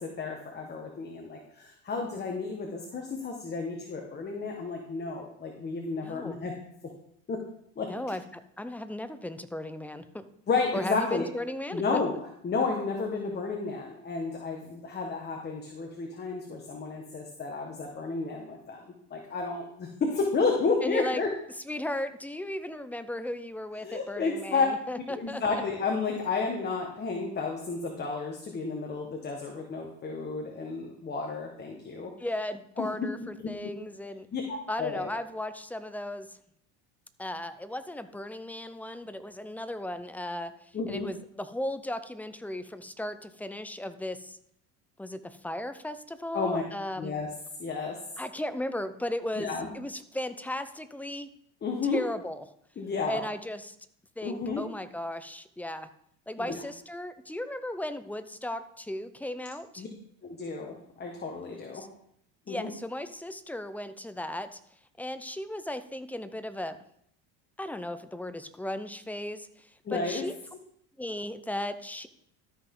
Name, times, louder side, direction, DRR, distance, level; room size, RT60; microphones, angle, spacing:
voice 1, 0.0-6.5 7.3-7.4 7.8-7.9 10.5-11.3 11.7-12.1 12.4-18.8 19.1-21.3 23.8-24.7 25.1-32.1 32.8-32.9 33.4-33.5 34.3-35.1 40.7-41.1 46.3-46.6 47.0-47.3 47.6-48.0 49.4-49.7 51.6-52.0 52.8-53.2 54.2-54.6 56.4-56.6 59.8-59.9 60.2-61.8 62.5-62.7 69.8-70.2, left 4 dB, 30° left, 1 dB, 1.6 m, -31 dB
voice 2, 6.0-6.4 7.9-10.3 10.7-12.0 20.8-21.2 21.7-25.6 32.2-34.3 34.7-36.4 37.2-44.4 45.0-47.1 48.2-51.3 51.9-52.4 53.1-53.8 54.2-55.9 56.3-59.8 61.7-61.9 62.5-64.6 65.0-66.8 67.6-70.3 71.0-72.1, left 1 dB, 5° left, 11 dB, 0.6 m, -36 dB
13.0 x 5.9 x 3.9 m, 0.71 s
supercardioid pair, 110°, 35 cm